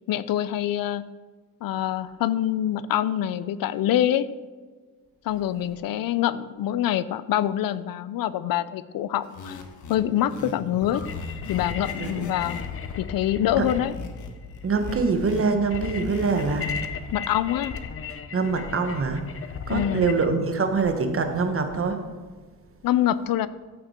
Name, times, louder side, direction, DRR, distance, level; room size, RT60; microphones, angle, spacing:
voice 1, 0.1-1.0 1.6-4.3 5.2-9.6 9.9-11.0 11.5-12.6 13.0-13.9 17.1-17.8 19.7-20.1 22.8-23.5, left 12 dB, 75° left, 15 dB, 0.6 m, -25 dB
sound 1, 9.2-16.9, left 3 dB, 55° left, 1.5 m, -39 dB
sound 2, 10.8-20.3, left 6 dB, 40° left, 0.7 m, -36 dB
voice 2, 14.6-16.7 18.3-19.2 19.7-22.0, right 4 dB, 40° right, 7 dB, 1.2 m, -24 dB
14.0 x 6.0 x 4.3 m, 1.4 s
cardioid pair, 130°, 35 cm